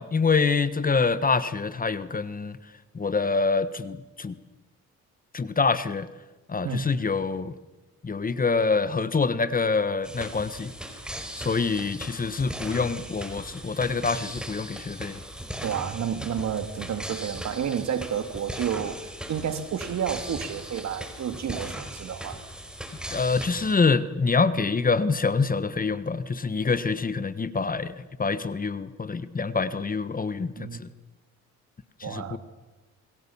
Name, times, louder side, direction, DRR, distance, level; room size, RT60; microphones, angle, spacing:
voice 1, 0.0-2.6 2.9-4.4 5.3-6.1 6.5-7.5 8.0-10.7 11.4-15.2 23.1-30.9 32.0-32.4, left 4 dB, 30° left, 14 dB, 1.4 m, -26 dB
sound 1, 10.0-23.7, equal, 5° right, 4.4 m, -38 dB
voice 2, 15.6-22.4 30.4-30.8 32.0-32.4, right 8 dB, 65° right, 9 dB, 2.5 m, -31 dB
28.0 x 22.0 x 7.2 m, 1.1 s
cardioid pair, 90°, 30 cm